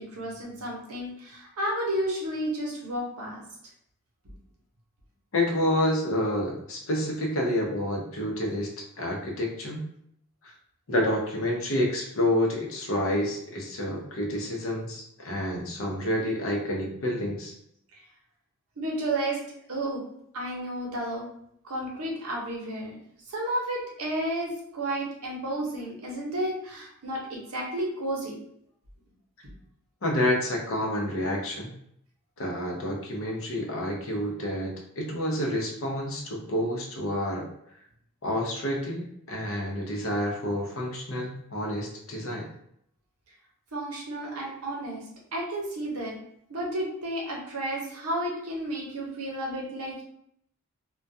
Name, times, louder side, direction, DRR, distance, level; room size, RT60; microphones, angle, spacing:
voice 1, 0.0-3.4 17.9-18.0 18.8-19.4 19.7-20.0 20.3-21.2 21.6-23.0 23.3-28.3 43.7-45.0 45.3-46.1 46.5-50.0, right 1 dB, 80° right, -2 dB, 0.8 m, -32 dB
voice 2, 5.3-8.7 9.0-9.8 10.4-10.5 10.9-17.5 30.0-31.7 32.4-37.5 38.2-42.5, left 1 dB, 65° left, -1 dB, 0.7 m, -29 dB
2.3 x 2.1 x 2.6 m, 0.71 s
head